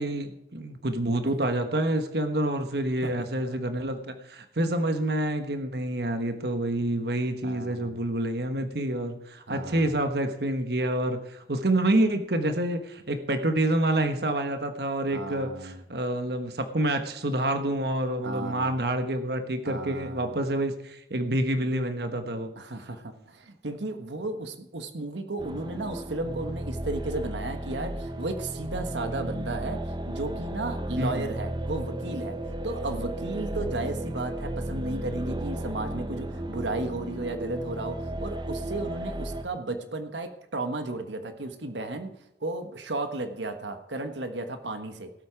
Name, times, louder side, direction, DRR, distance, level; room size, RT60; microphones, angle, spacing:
voice 1, 0.0-22.5 31.0-31.2, right 1 dB, 65° right, 7 dB, 1.3 m, -28 dB
voice 2, 3.0-3.6 7.4-8.0 9.5-10.0 15.1-15.8 18.2-18.8 19.6-20.4 22.5-32.4 32.6-45.1, right 2 dB, 90° right, 7 dB, 1.4 m, -34 dB
sound 1, 25.4-39.5, right 1 dB, 25° right, 0.9 m, -34 dB
17.5 x 8.6 x 4.6 m, 0.86 s
head